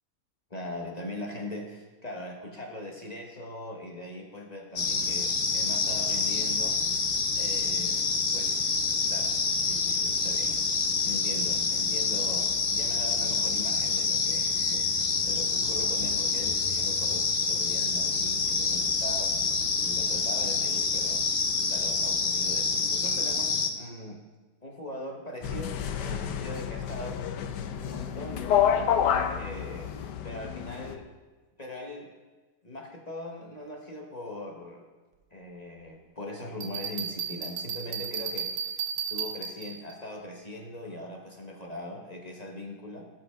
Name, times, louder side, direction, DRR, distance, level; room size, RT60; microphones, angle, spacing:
voice 1, 0.5-6.8 7.3-9.4 9.6-19.5 19.8-21.2 21.7-24.2 24.6-27.2 27.7-31.1 31.6-32.1 32.6-34.8 35.3-38.8 39.1-43.1, left 1 dB, 25° left, 0 dB, 1.1 m, -41 dB
sound 1, 4.8-23.7, left 4 dB, 45° left, 0.7 m, -27 dB
sound 2, 25.4-30.9, left 8 dB, 80° left, 1.3 m, -29 dB
Bell, 36.6-40.0, right 7 dB, 80° right, 1.7 m, -34 dB
17.5 x 6.1 x 3.6 m, 1.3 s
omnidirectional pair, 1.8 m